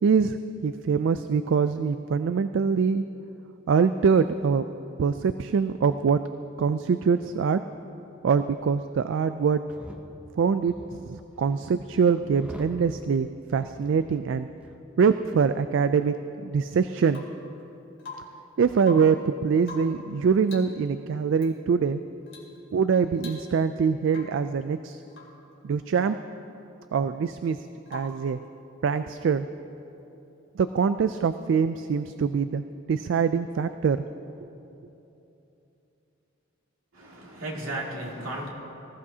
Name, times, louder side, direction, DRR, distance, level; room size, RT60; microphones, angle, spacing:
voice 1, 0.0-3.0 3.7-4.6 5.0-6.2 6.6-7.6 8.2-9.6 10.4-14.5 15.0-16.2 16.4-17.2 18.6-22.0 22.7-25.0 25.6-26.2 26.9-28.4 28.8-29.5 30.6-34.0 34.4-34.5, right 6 dB, 60° right, 11 dB, 0.3 m, -24 dB
sound 1, 9.6-10.0 10.7-12.8 13.5-14.3 14.6-14.8, equal, 5° right, 0.8 m, -45 dB
Rain / Water tap faucet / Drip, 17.1-17.5 18.0-18.5 18.8-19.2 19.6-20.1 20.4-20.8 21.3-21.5 22.3-22.6 22.8-22.9 23.2-23.7 24.1-24.5 25.1-25.4 27.9-28.3 30.2-30.3, left 3 dB, 65° left, 2.5 m, -44 dB
voice 2, 36.9-38.5, right 1 dB, 80° right, -3 dB, 2.4 m, -34 dB
19.5 x 15.0 x 2.8 m, 2.9 s
head